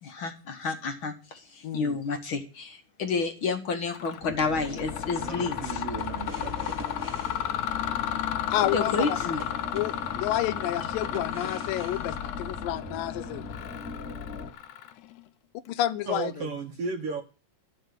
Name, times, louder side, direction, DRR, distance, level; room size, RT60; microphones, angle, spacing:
voice 1, 0.0-5.8 8.6-9.5, left 4 dB, 55° left, 1.5 m, -30 dB
voice 2, 1.6-2.0 8.5-8.9 9.7-13.4 15.7-16.5, left 13 dB, 90° left, 2.5 m, -30 dB
Mechanisms, 3.9-4.3 4.6-15.2, left 11 dB, 75° left, 2.1 m, -33 dB
sound 1, 4.2-14.5, left 4 dB, 40° left, 1.7 m, -39 dB
sound 2, 4.4-12.9 13.6-13.8, right 1 dB, 10° right, 0.9 m, -46 dB
voice 3, 5.2-6.8 16.0-17.2, right 4 dB, 65° right, 1.5 m, -35 dB
13.0 x 5.5 x 9.2 m
omnidirectional pair, 3.8 m